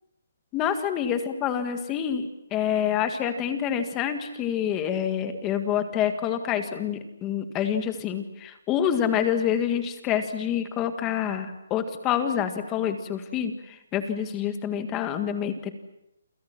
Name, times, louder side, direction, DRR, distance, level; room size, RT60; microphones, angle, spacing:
voice 1, 0.5-13.5 13.9-15.7, left 9 dB, 15° left, 8 dB, 1.7 m, -27 dB
29.0 x 27.0 x 6.0 m, 0.85 s
hypercardioid pair, 170°, 0 cm